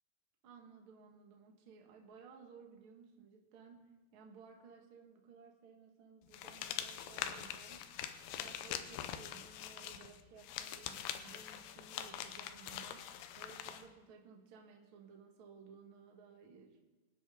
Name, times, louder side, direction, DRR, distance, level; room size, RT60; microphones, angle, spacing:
voice 1, 0.4-7.9 8.3-13.1 13.4-16.8, right 5 dB, 55° right, 1 dB, 1.5 m, -58 dB
sound 1, 6.3-13.8, left 10 dB, 75° left, 2.5 m, -44 dB
24.0 x 10.0 x 3.9 m, 1.2 s
omnidirectional pair, 5.2 m